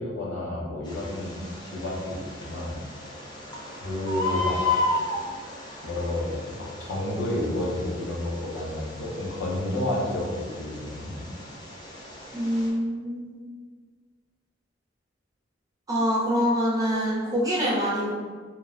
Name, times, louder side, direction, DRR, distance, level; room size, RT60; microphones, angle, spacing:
voice 1, 0.0-2.8 3.7-4.6 5.8-11.3, left 1 dB, 85° left, -3 dB, 0.7 m, -30 dB
Bird, 0.8-12.7, left 2 dB, 25° left, 0.5 m, -34 dB
voice 2, 12.3-13.4 15.9-18.1, equal, 20° right, -6 dB, 0.6 m, -25 dB
3.1 x 2.1 x 2.4 m, 1.5 s
head